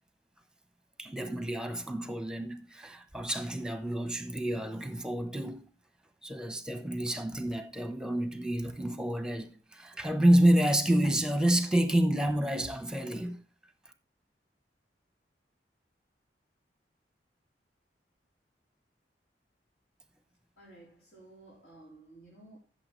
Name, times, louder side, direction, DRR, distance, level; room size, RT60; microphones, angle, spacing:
voice 1, 1.0-5.7 6.2-13.4, right 1 dB, 5° right, 1.0 m, -28 dB
voice 2, 20.6-22.6, right 2 dB, 70° left, 4.1 m, -54 dB
14.5 x 6.9 x 3.2 m
head